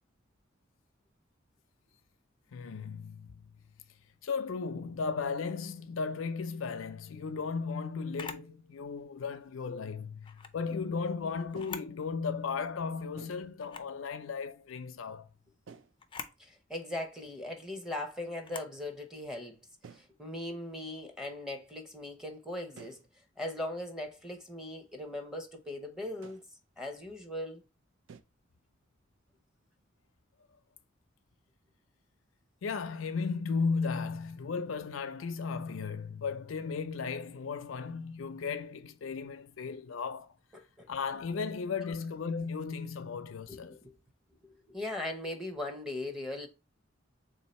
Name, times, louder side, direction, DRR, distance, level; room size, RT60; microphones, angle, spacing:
voice 1, 2.5-3.6 4.2-15.3 32.6-40.3 40.9-43.8, left 5 dB, 90° left, 0.5 m, -35 dB
Camera, 8.1-8.5 10.2-10.6 11.5-12.0 12.4-12.5 13.6-14.0 16.0-16.4 18.4-18.8, left 6 dB, 25° left, 0.4 m, -44 dB
sound 1, 8.9-9.0 9.4-9.7 11.5-12.0 13.2-13.5 15.7-16.0 17.1-17.3 17.6-18.0 18.3-18.5 18.8-19.2 19.8-20.2 22.8-23.2 23.5-23.6 24.3-24.4 26.2-26.5 28.1-28.2, right 6 dB, 70° right, 0.4 m, -53 dB
voice 2, 16.4-19.6 19.9-23.0 23.4-26.4 26.8-27.6 40.8-40.9 43.5-43.9 44.4-46.5, left 1 dB, 5° right, 0.7 m, -39 dB
3.6 x 2.7 x 4.2 m
head